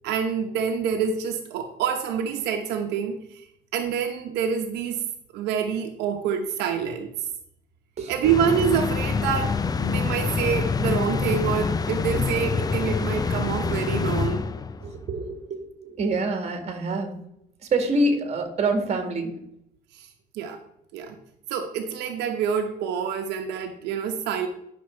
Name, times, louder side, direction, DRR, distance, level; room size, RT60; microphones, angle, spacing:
voice 1, 0.0-3.4 3.7-5.0 5.3-7.1 8.1-14.4 19.9-20.1 20.3-20.6 20.9-21.2 21.5-24.5, right 7 dB, 85° right, 4 dB, 1.0 m, -27 dB
sound 1, 8.2-14.9, left 5 dB, 20° left, 0.5 m, -26 dB
voice 2, 14.8-17.1 17.7-19.3, right 2 dB, 40° right, 6 dB, 2.1 m, -26 dB
10.5 x 6.1 x 4.5 m, 0.77 s
cardioid pair, 110°, 17 cm